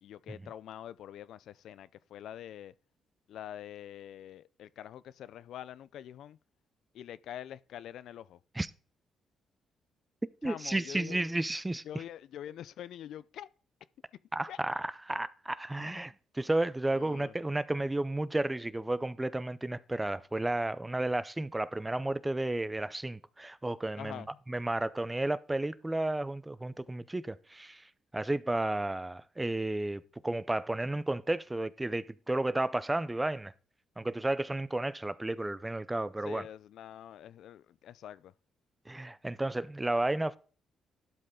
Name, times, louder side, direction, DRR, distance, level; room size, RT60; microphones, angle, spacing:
voice 1, 0.0-2.7 3.3-6.4 6.9-8.4 10.4-11.2 11.8-13.5 14.5-14.6 15.8-16.0 16.9-17.3 24.0-24.3 36.2-38.3, left 11 dB, 75° left, 0.4 m, -45 dB
voice 2, 10.4-12.0 14.3-27.9 28.1-33.5 34.0-36.5 38.9-40.4, right 2 dB, 15° right, 0.5 m, -32 dB
12.0 x 5.3 x 3.7 m
cardioid pair, 90°, 0 cm